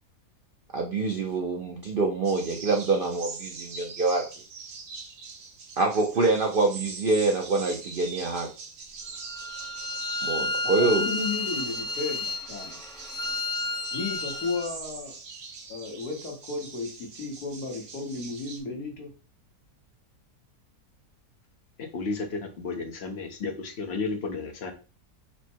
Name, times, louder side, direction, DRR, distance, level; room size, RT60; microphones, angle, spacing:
voice 1, 0.7-4.2 5.8-8.5 10.2-11.1, right 3 dB, 65° right, 2 dB, 0.5 m, -25 dB
sound 1, 2.2-18.6, right 4 dB, 85° right, 1.4 m, -43 dB
Bowed string instrument, 9.3-14.7, left 2 dB, 5° left, 0.6 m, -31 dB
voice 2, 10.6-12.8 13.9-15.1 15.7-19.1, left 4 dB, 75° left, 1 dB, 1.7 m, -34 dB
voice 3, 21.9-24.7, left 4 dB, 50° left, 4 dB, 0.9 m, -32 dB
4.3 x 2.1 x 4.4 m, 0.34 s
omnidirectional pair, 1.7 m